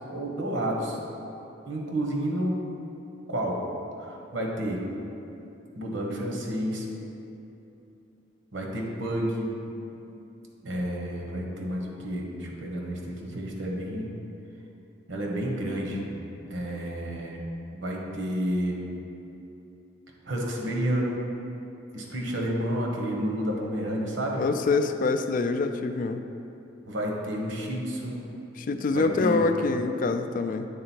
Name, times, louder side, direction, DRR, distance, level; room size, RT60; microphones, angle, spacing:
voice 1, 0.1-1.0 1.6-2.6 3.3-3.6 4.0-4.8 5.7-6.8 8.5-9.5 10.6-14.1 15.1-16.0 16.5-17.4 17.7-18.8 20.2-21.1 21.9-24.4 26.9-28.1 28.9-29.4, equal, 80° right, -1 dB, 1.1 m, -30 dB
voice 2, 24.4-26.2 28.6-30.7, left 3 dB, 45° left, 8 dB, 0.3 m, -25 dB
8.7 x 3.8 x 4.4 m, 2.8 s
head